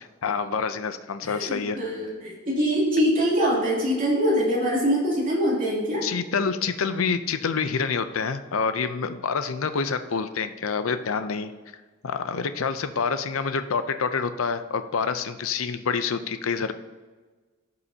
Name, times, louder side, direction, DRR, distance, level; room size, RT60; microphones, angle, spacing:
voice 1, 0.0-1.8 6.0-11.5 12.0-16.7, left 5 dB, 75° left, 10 dB, 0.6 m, -27 dB
voice 2, 1.2-6.0, equal, 40° right, -5 dB, 2.8 m, -24 dB
15.5 x 5.6 x 2.8 m, 1.3 s
head